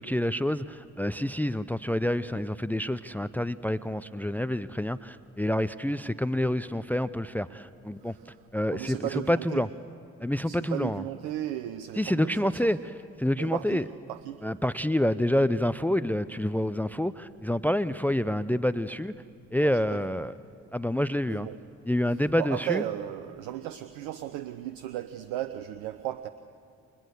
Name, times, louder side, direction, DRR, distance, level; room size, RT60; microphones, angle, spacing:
voice 1, 0.0-8.1 8.5-9.0 9.3-9.7 10.2-11.0 12.0-12.8 13.2-13.8 14.4-19.1 19.5-20.3 20.7-21.5 21.9-22.8, left 1 dB, 5° left, 16 dB, 0.7 m, -27 dB
voice 2, 8.7-9.6 10.4-12.7 13.4-13.8 14.1-14.4 19.6-20.3 21.2-21.6 22.1-26.3, right 13 dB, 70° right, 12 dB, 0.8 m, -35 dB
30.0 x 26.5 x 6.8 m, 2.3 s
figure-of-eight pair, 40°, 38 cm